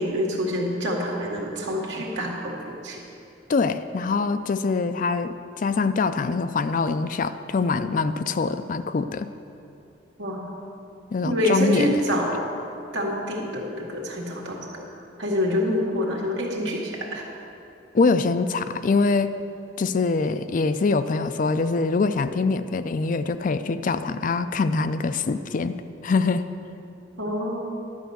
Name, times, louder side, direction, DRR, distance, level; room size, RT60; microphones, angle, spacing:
voice 1, 0.0-3.0 10.2-10.4 11.2-12.5 12.9-14.9 15.2-17.3 27.2-27.6, equal, 80° right, -1 dB, 1.9 m, -26 dB
voice 2, 3.5-9.3 11.1-11.9 17.9-19.3 19.8-25.7 26.0-26.5, left 4 dB, 45° left, 11 dB, 0.4 m, -24 dB
11.5 x 5.6 x 7.9 m, 2.6 s
head